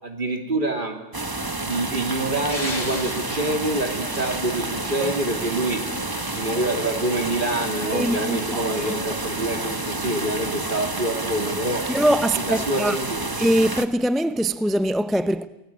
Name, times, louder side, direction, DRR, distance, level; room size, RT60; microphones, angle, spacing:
voice 1, 0.0-1.0 1.6-5.8 6.3-11.8 12.3-13.2, right 1 dB, 50° right, 3.2 m, -26 dB
sound 1, 1.1-13.9, right 2 dB, 20° right, 1.1 m, -29 dB
sound 2, 2.3-11.9, left 1 dB, 40° left, 3.6 m, -40 dB
voice 2, 7.9-8.8 11.9-13.0 13.4-15.5, right 1 dB, ahead, 0.5 m, -22 dB
24.5 x 18.5 x 8.6 m
omnidirectional pair, 1.1 m